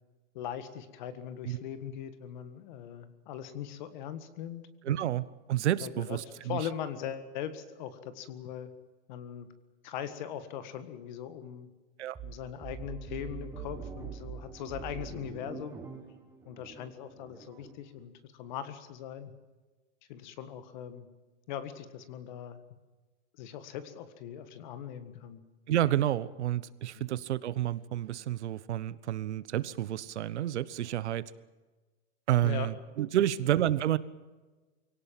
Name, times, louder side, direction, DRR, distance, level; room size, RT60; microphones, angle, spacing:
voice 1, 0.3-5.0 5.8-8.7 9.1-9.5 9.8-11.7 12.2-15.8 16.4-19.3 20.1-21.1 21.5-22.6 23.4-25.4 26.9-27.2 32.4-32.7, left 9 dB, 40° left, 12 dB, 1.8 m, -40 dB
voice 2, 4.8-6.6 12.0-12.2 25.7-31.3 32.3-34.0, right 12 dB, 70° right, 17 dB, 1.1 m, -30 dB
sound 1, 12.1-17.8, right 6 dB, 5° right, 1.7 m, -44 dB
24.5 x 17.5 x 7.5 m, 1.2 s
supercardioid pair, 170°, 35 cm